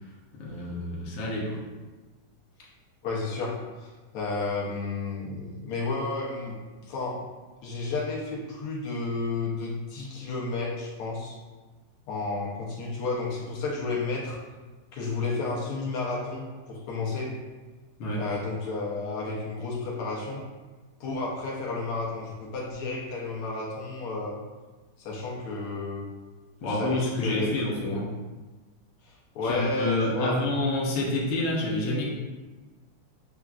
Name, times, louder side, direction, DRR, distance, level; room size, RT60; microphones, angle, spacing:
voice 1, 0.4-1.6 18.0-18.3 26.6-28.1 29.4-32.1, left 1 dB, 65° left, -3 dB, 1.4 m, -28 dB
voice 2, 3.0-7.2 7.6-11.4 12.1-14.4 14.9-17.3 18.2-20.4 21.0-24.4 25.0-26.0 26.6-27.5 29.0-30.5, left 3 dB, 80° left, -4 dB, 1.7 m, -32 dB
6.9 x 2.4 x 2.3 m, 1.2 s
omnidirectional pair, 2.4 m